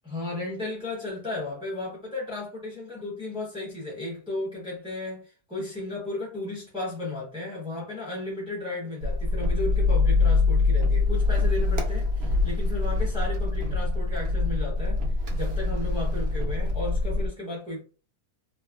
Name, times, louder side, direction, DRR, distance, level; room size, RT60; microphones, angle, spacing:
voice 1, 0.0-15.0 15.3-17.8, left 2 dB, 5° right, 0.4 m, -34 dB
sound 1, 9.0-17.3, left 3 dB, 85° right, 0.5 m, -24 dB
2.9 x 2.3 x 2.2 m
omnidirectional pair, 1.7 m